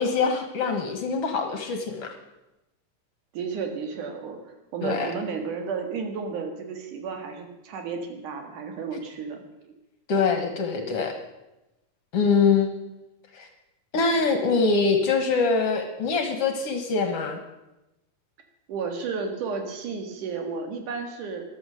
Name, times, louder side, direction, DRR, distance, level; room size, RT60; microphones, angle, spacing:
voice 1, 0.0-2.1 4.8-5.1 10.1-11.2 12.1-12.7 13.3-13.5 13.9-17.4, left 4 dB, 60° left, 5 dB, 1.9 m, -24 dB
voice 2, 3.3-4.4 4.7-9.7 18.7-21.4, right 5 dB, 80° right, 5 dB, 3.3 m, -32 dB
14.5 x 11.5 x 6.3 m, 0.96 s
omnidirectional pair, 3.6 m